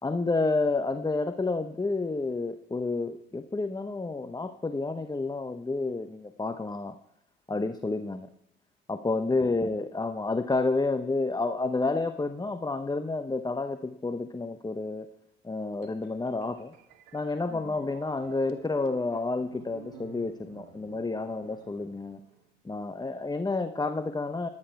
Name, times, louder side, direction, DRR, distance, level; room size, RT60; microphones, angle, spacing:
voice 1, 0.0-7.0 7.5-8.3 8.9-15.1 15.4-16.7 17.1-22.2 22.6-24.5, left 3 dB, 15° left, 9 dB, 0.8 m, -30 dB
sound 1, 15.8-22.5, right 8 dB, 80° right, 1.2 m, -51 dB
28.0 x 9.9 x 4.6 m, 0.80 s
hypercardioid pair, 55°, 30 cm